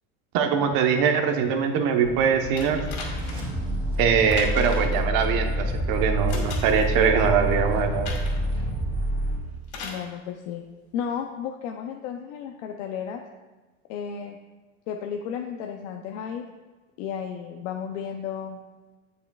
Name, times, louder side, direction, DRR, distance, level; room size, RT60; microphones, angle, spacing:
voice 1, 0.3-2.8 4.0-8.1, right 6 dB, 65° right, 5 dB, 1.1 m, -22 dB
sound 1, 2.0-9.4, equal, 15° right, 2.4 m, -27 dB
sound 2, 2.6-3.5 4.3-5.0 6.3-6.9 8.0-8.5 9.7-10.1 11.1-11.2, left 4 dB, 55° left, 2.2 m, -38 dB
voice 2, 9.8-10.6 10.9-13.2 13.9-14.4 14.9-16.4 17.0-18.6, left 8 dB, 75° left, 3 dB, 0.7 m, -33 dB
8.4 x 8.3 x 2.3 m, 1.3 s
supercardioid pair, 120°, 36 cm